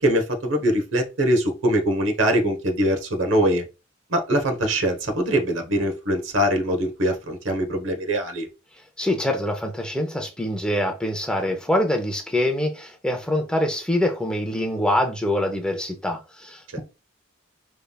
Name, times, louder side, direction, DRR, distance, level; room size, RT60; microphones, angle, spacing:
voice 1, 0.0-3.6 4.1-8.5 16.7-16.8, equal, 65° right, 1.0 m, -22 dB
voice 2, 9.0-16.8, left 1 dB, 5° left, 0.7 m, -24 dB
5.3 x 3.4 x 2.3 m
head